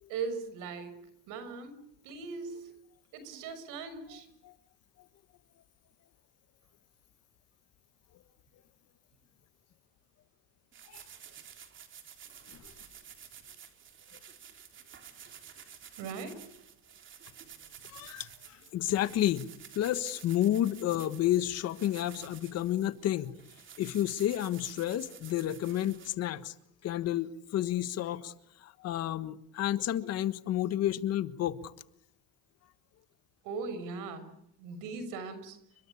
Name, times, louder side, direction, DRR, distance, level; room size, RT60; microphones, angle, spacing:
voice 1, 0.1-1.8 2.0-2.7 3.1-4.3 16.0-16.4 33.4-34.3 34.6-35.6, right 4 dB, 70° right, 6.5 m, -39 dB
voice 2, 4.1-4.5 10.9-11.0 12.5-12.7 17.8-19.5 19.7-23.3 23.8-26.5 26.8-28.3 28.6-31.7, left 12 dB, 50° left, 1.5 m, -31 dB
sound 1, 10.7-26.1, right 8 dB, 35° right, 3.5 m, -52 dB
30.0 x 23.5 x 8.5 m
cardioid pair, 150°, 33 cm